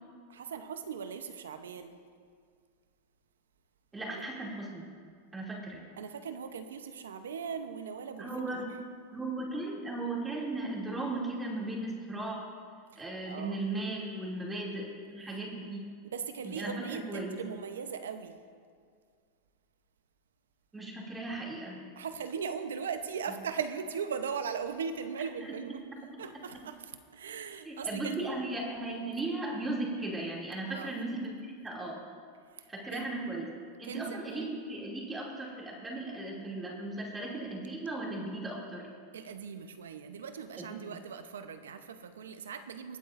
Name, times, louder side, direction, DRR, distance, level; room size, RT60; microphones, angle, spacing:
voice 1, 0.3-2.0 4.1-4.2 6.0-8.7 12.9-13.6 16.1-18.4 22.0-25.8 26.2-28.3 30.7-30.9 32.6-33.4 33.8-34.5 39.1-43.0, right 6 dB, 90° right, 9 dB, 0.8 m, -39 dB
voice 2, 3.9-4.9 5.3-5.8 8.2-8.7 9.1-12.5 13.0-15.8 16.4-17.4 20.7-21.8 25.4-25.5 25.9-26.0 27.6-31.4 31.6-32.0 32.7-33.5 33.8-38.9 40.6-40.7, right 2 dB, 15° right, -3 dB, 2.7 m, -37 dB
24.5 x 8.5 x 2.6 m, 2.1 s
hypercardioid pair, 115°, 0 cm